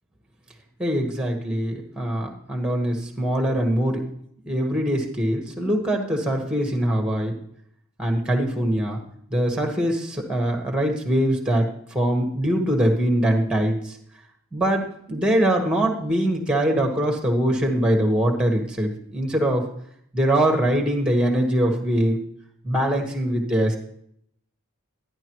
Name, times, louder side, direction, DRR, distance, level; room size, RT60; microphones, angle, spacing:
voice 1, 0.8-4.0 4.5-7.3 8.0-9.0 9.3-14.0 14.5-19.6 20.1-22.2 22.6-23.8, right 1 dB, 5° right, 2 dB, 1.5 m, -22 dB
11.0 x 11.0 x 3.1 m, 0.69 s
head